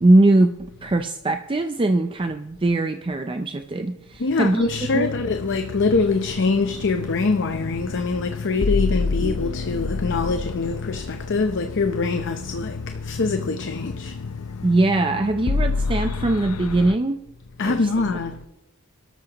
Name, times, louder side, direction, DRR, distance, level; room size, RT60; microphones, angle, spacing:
voice 1, 0.0-5.1 9.2-9.5 14.6-17.2 17.6-17.9, right 2 dB, 25° right, 0.5 m, -21 dB
voice 2, 4.2-14.6 17.6-18.4, left 3 dB, 55° left, 0.7 m, -24 dB
sound 1, 4.7-17.0, left 4 dB, 90° left, 0.7 m, -29 dB
26.0 x 12.5 x 3.0 m
head